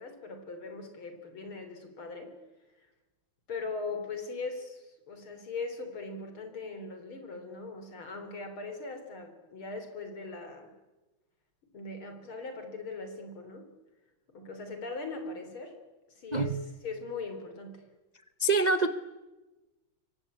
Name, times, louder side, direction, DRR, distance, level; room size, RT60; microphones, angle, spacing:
voice 1, 0.0-2.4 2.8-2.9 3.5-10.7 11.7-13.7 14.3-15.8 16.2-16.6 16.8-17.8, left 3 dB, 75° left, 7 dB, 4.5 m, -40 dB
voice 2, 16.3-16.6 18.4-18.9, right 3 dB, 40° right, 10 dB, 0.6 m, -25 dB
27.0 x 23.5 x 8.6 m, 1.1 s
omnidirectional pair, 2.3 m